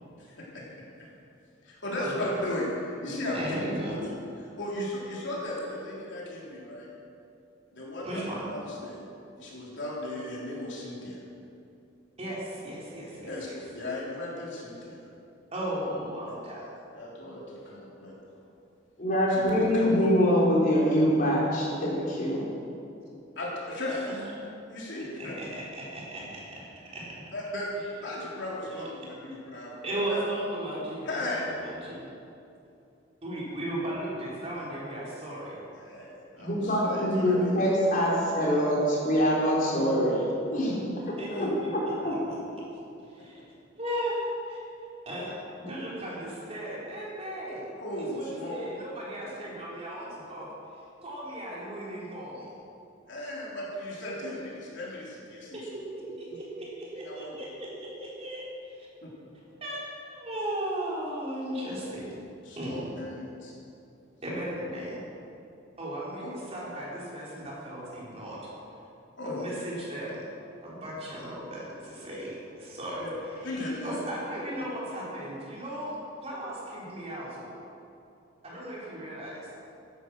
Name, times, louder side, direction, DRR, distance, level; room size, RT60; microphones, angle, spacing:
voice 1, 0.2-0.6 1.6-3.4 3.9-6.9 7.7-8.2 8.5-9.0 9.4-11.2 13.2-15.0 16.3-16.4 16.9-18.2 19.3-20.1 23.4-24.0 24.7-25.4 27.3-29.8 30.1-30.2 31.0-31.5 35.7-37.7 41.3-41.5 47.8-48.7 53.1-55.7 56.3-56.4 57.0-57.4 59.0-59.1 62.4-63.5 66.2-66.3 69.2-69.4 73.0-73.1 73.4-74.0, left 1 dB, 65° left, -5 dB, 4.0 m, -36 dB
voice 2, 3.3-4.0 8.0-8.5 12.2-13.6 15.5-16.7 23.9-24.1 25.2-27.2 28.7-28.8 29.8-32.1 33.2-35.5 36.4-36.5 41.2-41.7 42.0-42.4 43.1-43.4 43.8-44.6 45.1-47.7 48.0-50.5 51.0-52.5 55.5-58.9 59.6-62.2 62.6-62.9 64.2-65.0 65.8-68.5 69.2-70.2 70.6-73.1 73.8-76.0 76.2-77.5 78.4-79.5, right 1 dB, 30° right, -6 dB, 4.2 m, -36 dB
voice 3, 19.0-22.4 36.4-40.2 40.5-40.8 42.0-42.1, equal, 45° left, -5 dB, 4.3 m, -24 dB
14.5 x 12.0 x 6.4 m, 2.7 s
head